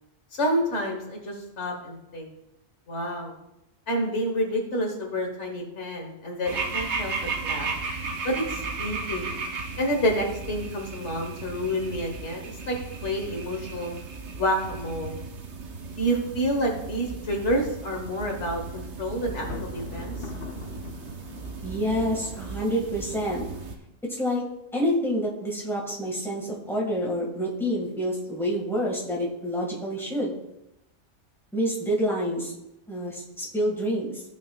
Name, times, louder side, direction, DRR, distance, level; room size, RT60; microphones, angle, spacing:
voice 1, 0.3-2.3 2.9-3.3 3.9-7.1 7.4-7.7 8.2-9.3 9.8-13.9 14.4-15.2 16.0-20.1, equal, 75° left, 2 dB, 1.8 m, -29 dB
sound 1, 6.4-23.8, right 4 dB, 75° right, 1.2 m, -35 dB
Thunder, 19.3-22.7, left 5 dB, 55° left, 0.9 m, -41 dB
voice 2, 21.6-23.5 24.2-24.4 24.7-30.3 31.5-32.5 32.9-34.2, equal, ahead, -3 dB, 1.8 m, -27 dB
15.0 x 5.8 x 2.4 m, 0.88 s
omnidirectional pair, 1.2 m